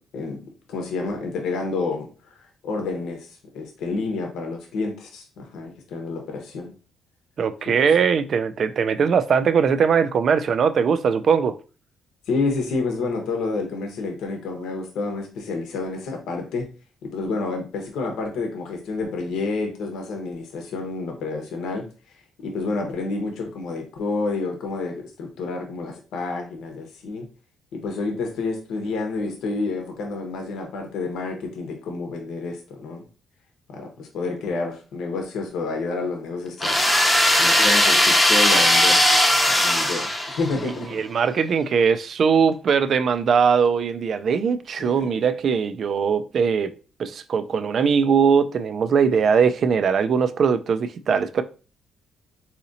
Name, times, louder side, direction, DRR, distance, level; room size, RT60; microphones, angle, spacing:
voice 1, 0.7-2.3 2.6-3.3 3.5-6.7 8.0-8.1 12.3-16.7 17.0-21.9 22.4-27.3 27.7-33.0 33.7-36.8 37.4-40.9 44.8-45.1, left 3 dB, 85° left, 0.8 m, -29 dB
voice 2, 7.4-11.6 40.6-46.7 47.0-51.4, right 6 dB, 55° right, 0.3 m, -20 dB
sound 1, 36.6-40.7, left 1 dB, 5° left, 0.6 m, -18 dB
3.9 x 2.8 x 2.6 m
cardioid pair, 95°, 0 cm